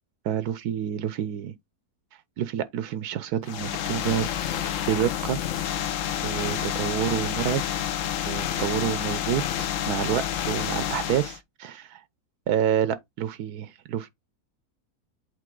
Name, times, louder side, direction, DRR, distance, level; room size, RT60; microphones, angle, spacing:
voice 1, 0.2-1.5 2.4-4.3 4.8-5.4 6.2-7.6 8.3-12.0 12.5-14.1, right 10 dB, 80° right, 1.1 m, -28 dB
sound 1, 3.4-11.4, left 10 dB, 60° left, 1.0 m, -29 dB
8.3 x 3.5 x 3.7 m
omnidirectional pair, 1.7 m